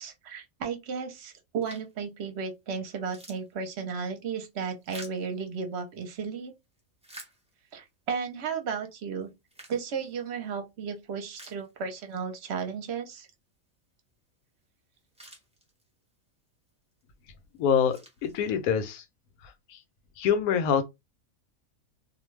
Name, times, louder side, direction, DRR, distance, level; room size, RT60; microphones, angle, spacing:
voice 1, 0.0-6.5 7.7-9.3 9.7-13.3, right 6 dB, 60° right, 0.8 m, -34 dB
sound 1, 1.6-2.1 2.5-2.6 2.9-6.1 6.6-7.9 8.4-8.5 9.2-10.6 11.0-11.1 11.3-12.2 12.5-12.6 14.6-14.7 14.9-16.1 16.7-17.0 17.5-18.8, right 1 dB, 5° right, 0.6 m, -51 dB
voice 2, 17.6-19.0 19.4-19.8 20.2-20.8, left 7 dB, 85° left, 1.1 m, -26 dB
2.5 x 2.2 x 3.1 m
omnidirectional pair, 1.5 m